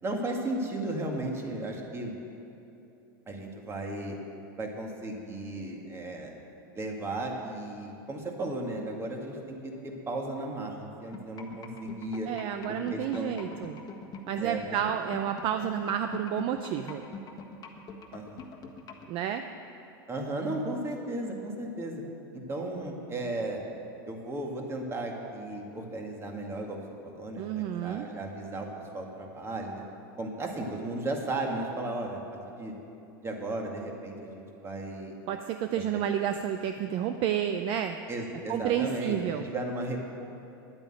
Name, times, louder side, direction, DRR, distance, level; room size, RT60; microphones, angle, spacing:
voice 1, 0.0-2.1 3.3-4.2 4.6-6.3 6.7-12.3 12.7-13.4 14.4-14.6 18.1-18.4 20.1-22.0 22.3-23.6 24.0-28.7 28.9-29.8 30.2-32.2 32.5-32.7 33.2-35.2 35.8-36.0 38.1-40.0, right 2 dB, 20° right, 1 dB, 2.1 m, -35 dB
sound 1, 11.1-19.1, left 6 dB, 30° left, 1.4 m, -43 dB
voice 2, 12.3-13.8 14.3-17.0 19.1-19.4 27.4-28.1 35.3-38.0 38.5-39.5, right 9 dB, 45° right, 8 dB, 0.6 m, -30 dB
10.5 x 8.8 x 9.1 m, 2.8 s
supercardioid pair, 125°, 12 cm